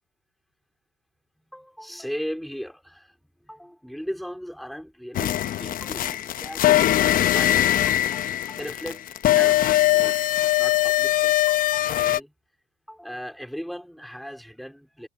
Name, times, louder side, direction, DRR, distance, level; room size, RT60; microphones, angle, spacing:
voice 1, 1.5-12.3 12.9-15.1, equal, ahead, 3.9 m, -38 dB
sound 1, 5.1-12.2, left 14 dB, 50° left, 0.9 m, -21 dB
supercardioid pair, 95°, 19 cm